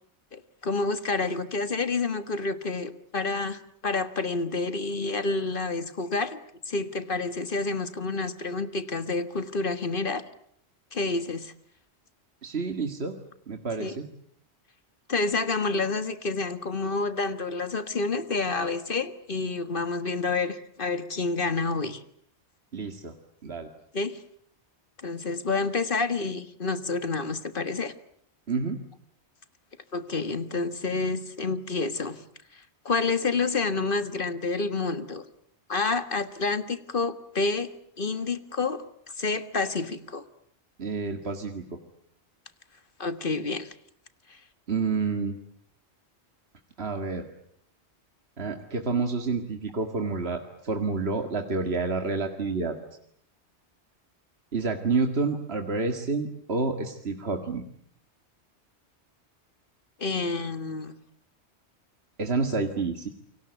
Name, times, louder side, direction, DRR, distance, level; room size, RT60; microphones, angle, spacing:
voice 1, 0.3-6.4 6.7-10.3 10.9-11.5 13.8-13.9 15.1-22.0 23.9-24.2 25.0-27.9 29.9-32.2 32.9-35.2 35.7-37.7 38.0-38.8 39.2-40.2 43.0-43.7 60.0-61.0, left 3 dB, 50° left, 11 dB, 1.8 m, -29 dB
voice 2, 12.4-13.2 13.5-14.1 22.7-23.1 23.4-23.7 28.5-28.8 40.8-41.8 44.7-45.4 46.8-47.3 48.4-52.8 54.5-57.6 62.2-63.1, right 4 dB, 65° right, 5 dB, 2.3 m, -29 dB
29.0 x 24.5 x 8.2 m, 0.66 s
omnidirectional pair, 1.1 m